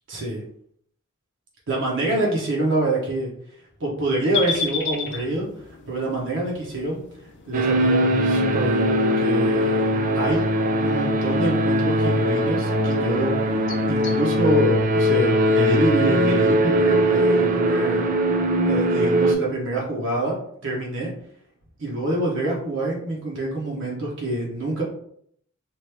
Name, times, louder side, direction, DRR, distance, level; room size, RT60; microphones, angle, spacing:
voice 1, 0.1-0.4 1.7-3.3 3.8-5.5 5.9-7.0 7.4-9.8 10.1-10.4 10.8-13.6 13.9-18.0 18.7-20.4 20.6-21.1 21.8-24.8, right 2 dB, 60° right, -2 dB, 0.8 m, -26 dB
sound 1, 4.3-14.2, left 5 dB, 55° left, 0.4 m, -36 dB
sound 2, 7.5-19.4, equal, 40° right, 0.4 m, -20 dB
3.0 x 2.5 x 3.2 m, 0.67 s
head